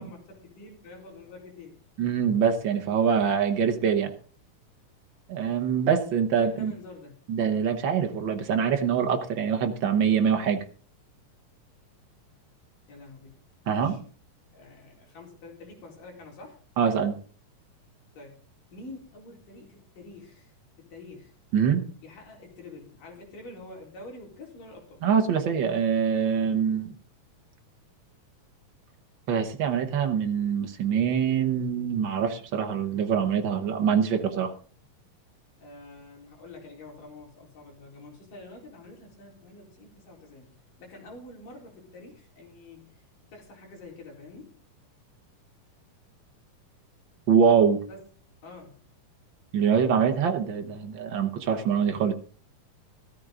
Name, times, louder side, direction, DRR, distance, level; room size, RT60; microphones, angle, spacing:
voice 1, 0.0-1.8 6.4-7.2 12.9-13.4 13.7-14.0 14.5-16.6 18.1-18.4 18.7-20.5 20.8-21.3 22.0-25.0 35.6-40.5 40.8-43.0 43.3-44.6 47.8-48.0 48.4-48.8, left 2 dB, 75° left, -1 dB, 5.6 m, -47 dB
voice 2, 2.0-4.1 5.3-6.7 7.3-10.6 13.7-14.0 16.8-17.2 21.5-21.8 25.0-26.9 29.3-34.5 47.3-47.8 49.5-52.1, right 7 dB, 85° right, 6 dB, 1.0 m, -24 dB
15.0 x 14.0 x 3.8 m, 0.42 s
omnidirectional pair, 3.8 m